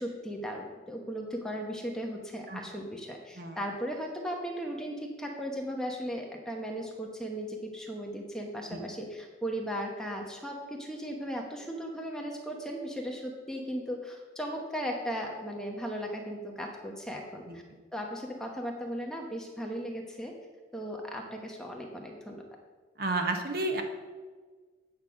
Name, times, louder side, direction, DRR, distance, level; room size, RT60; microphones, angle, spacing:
voice 1, 0.0-17.6 17.9-20.3 20.7-22.4, equal, 5° left, 0 dB, 1.0 m, -37 dB
voice 2, 23.0-23.8, right 2 dB, 55° right, 4 dB, 1.0 m, -31 dB
8.8 x 5.6 x 6.2 m, 1.5 s
head